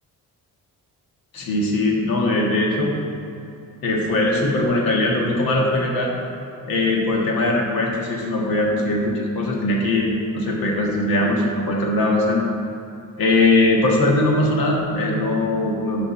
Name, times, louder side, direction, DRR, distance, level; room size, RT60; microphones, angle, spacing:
voice 1, 1.3-2.9 3.8-6.1 6.7-12.4 13.2-16.0, left 2 dB, 90° left, -1 dB, 1.8 m, -20 dB
12.0 x 5.2 x 4.4 m, 2.7 s
cardioid pair, 135°, 34 cm